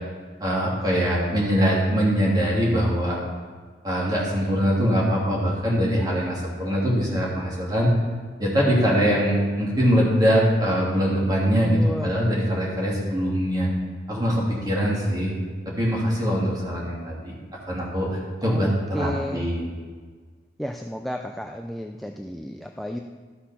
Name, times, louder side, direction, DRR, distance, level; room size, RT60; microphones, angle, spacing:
voice 1, 0.4-3.2 3.8-7.9 8.4-13.7 14.1-15.3 15.7-17.4 17.7-19.7, equal, 20° right, -5 dB, 2.7 m, -22 dB
voice 2, 11.6-12.1 18.4-18.7 18.9-19.5 20.6-23.0, equal, ahead, 3 dB, 0.4 m, -32 dB
13.5 x 6.1 x 5.8 m, 1.5 s
head